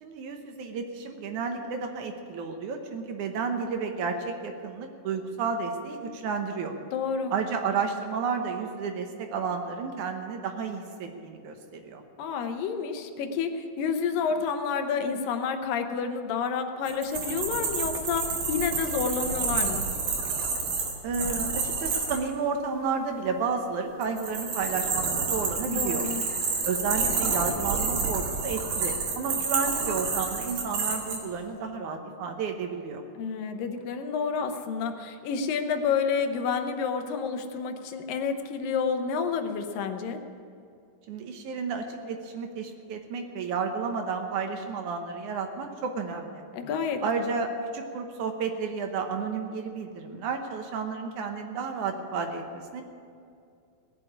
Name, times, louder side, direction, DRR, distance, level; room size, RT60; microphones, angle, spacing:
voice 1, 0.0-6.7 7.3-12.0 21.0-26.1 26.7-33.0 41.1-46.4 47.0-52.8, right 5 dB, 70° right, 5 dB, 2.3 m, -32 dB
voice 2, 6.9-7.3 12.2-19.8 25.6-26.2 33.2-40.2 46.5-47.3, left 6 dB, 80° left, 6 dB, 2.6 m, -29 dB
sound 1, 16.9-22.2 24.0-31.2, right 4 dB, 90° right, 4.0 m, -29 dB
17.5 x 7.0 x 9.8 m, 2.4 s
omnidirectional pair, 4.0 m